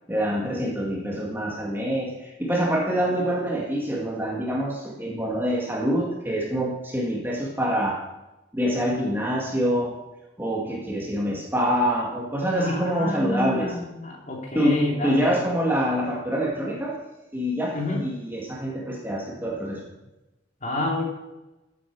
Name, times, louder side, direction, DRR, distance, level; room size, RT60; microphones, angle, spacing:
voice 1, 0.1-8.0 8.5-9.9 10.4-13.8 14.5-17.0 17.3-19.8, equal, 10° right, -2 dB, 1.9 m, -26 dB
voice 2, 12.5-15.4 17.7-18.0 20.6-21.1, left 2 dB, 35° left, 0 dB, 2.7 m, -29 dB
14.0 x 8.4 x 4.7 m, 1.0 s
head